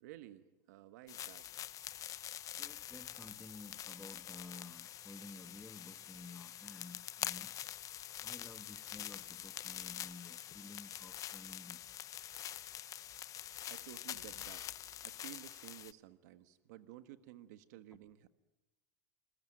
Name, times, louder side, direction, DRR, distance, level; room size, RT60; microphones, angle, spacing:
voice 1, 0.0-1.5 13.7-14.7 15.0-18.3, right 14 dB, 80° right, 11 dB, 1.4 m, -54 dB
sound 1, 1.1-15.9, left 11 dB, 35° left, 0.9 m, -46 dB
voice 2, 2.6-7.5 8.2-11.8, left 2 dB, 5° left, 9 dB, 1.3 m, -53 dB
29.5 x 21.5 x 9.0 m, 1.0 s
supercardioid pair, 125°, 9 cm